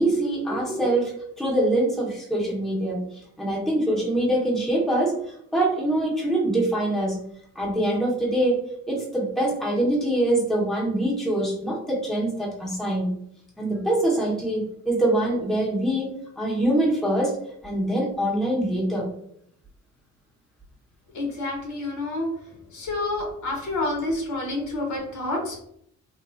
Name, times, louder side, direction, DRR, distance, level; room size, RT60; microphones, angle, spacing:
voice 1, 0.0-5.2 5.5-7.2 7.5-13.1 13.6-16.1 16.4-17.4 17.6-19.1, right 1 dB, ahead, -4 dB, 0.9 m, -24 dB
voice 2, 21.1-22.3 22.7-25.6, left 2 dB, 70° left, 1 dB, 1.0 m, -28 dB
2.9 x 2.3 x 2.4 m, 0.71 s
cardioid pair, 90°, 30 cm